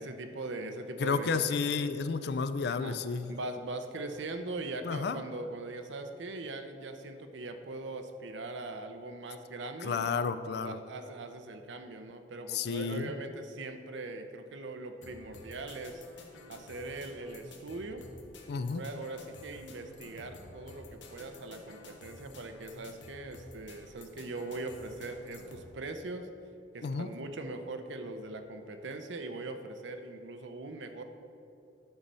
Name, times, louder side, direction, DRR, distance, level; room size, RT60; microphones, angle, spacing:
voice 1, 0.0-1.7 2.7-3.0 3.3-10.0 10.5-16.0 16.5-18.0 18.7-26.3 26.7-31.0, right 2 dB, 85° right, 7 dB, 0.7 m, -41 dB
voice 2, 1.0-3.3 4.8-5.2 9.8-10.8 12.5-13.2 18.5-18.8 26.8-27.1, left 5 dB, 60° left, 12 dB, 0.4 m, -31 dB
sound 1, 15.0-25.7, left 2 dB, 85° left, 1.0 m, -51 dB
10.5 x 4.1 x 5.4 m, 2.6 s
head